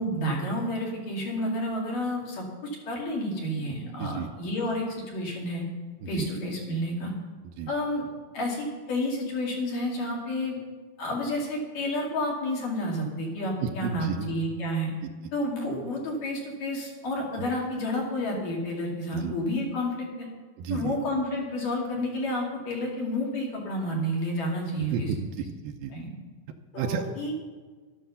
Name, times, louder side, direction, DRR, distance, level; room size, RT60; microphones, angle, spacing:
voice 1, 0.0-5.6 6.1-7.1 7.7-8.1 8.3-10.6 11.0-14.9 15.3-20.3 20.7-25.1 25.9-26.1 26.7-27.3, left 1 dB, 60° left, -1 dB, 3.8 m, -30 dB
voice 2, 4.0-4.3 6.0-6.3 7.6-7.7 13.6-14.3 15.0-15.3 17.4-17.5 19.1-19.3 20.6-20.9 24.9-25.9 26.8-27.1, right 6 dB, 80° right, 4 dB, 2.5 m, -32 dB
12.0 x 10.0 x 6.9 m, 1.4 s
omnidirectional pair, 4.4 m